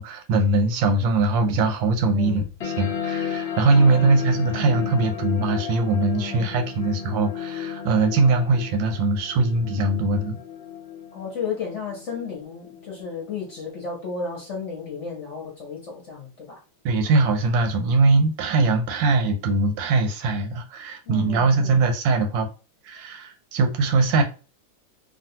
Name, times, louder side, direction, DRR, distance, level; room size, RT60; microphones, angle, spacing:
voice 1, 0.0-10.4 16.8-22.5 22.8-24.2, right 3 dB, 85° right, 1.4 m, -21 dB
voice 2, 2.0-2.5 3.5-4.1 6.1-6.5 11.1-16.6 21.1-21.8, left 5 dB, 50° left, 0.9 m, -34 dB
sound 1, 2.6-13.6, left 8 dB, 70° left, 0.6 m, -34 dB
3.2 x 2.3 x 2.7 m
omnidirectional pair, 2.0 m